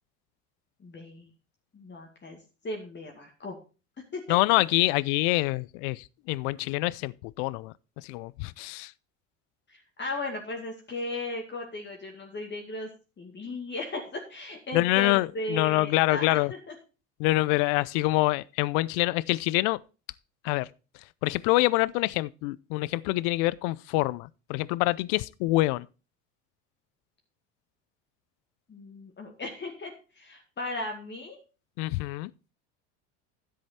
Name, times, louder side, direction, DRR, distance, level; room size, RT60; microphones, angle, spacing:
voice 1, 0.8-1.3 1.7-2.4 2.6-3.6 4.1-4.4 9.7-12.9 13.2-16.7 28.7-31.4, left 2 dB, 30° left, 2.2 m, -36 dB
voice 2, 4.3-8.9 14.7-16.5 17.2-19.8 20.4-20.7 21.2-25.9 31.8-32.3, left 20 dB, 70° left, 0.6 m, -26 dB
10.5 x 7.8 x 4.2 m
hypercardioid pair, 85°, 37 cm